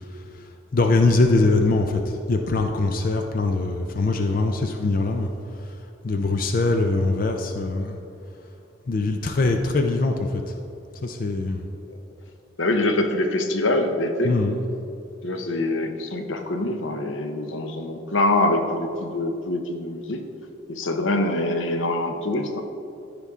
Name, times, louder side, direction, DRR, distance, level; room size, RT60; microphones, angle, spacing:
voice 1, 0.7-2.0 2.3-5.3 6.0-8.0 8.9-10.4 11.0-11.6 14.2-14.6, left 3 dB, 45° left, 4 dB, 0.5 m, -22 dB
voice 2, 12.6-14.4 15.2-20.2 20.7-22.6, left 2 dB, 85° left, 5 dB, 0.8 m, -24 dB
14.0 x 5.3 x 3.6 m, 2.6 s
head